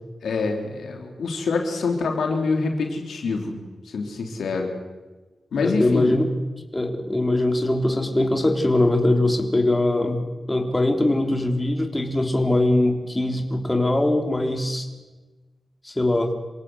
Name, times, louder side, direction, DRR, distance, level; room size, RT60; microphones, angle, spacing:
voice 1, 0.2-3.6 3.9-4.7 5.5-6.2, left 4 dB, 90° left, 3 dB, 3.5 m, -25 dB
voice 2, 5.6-6.3 6.7-10.2 10.5-14.9 15.8-16.3, left 1 dB, 25° left, 4 dB, 3.8 m, -21 dB
27.5 x 17.0 x 8.1 m, 1.2 s
cardioid pair, 45°, 0 cm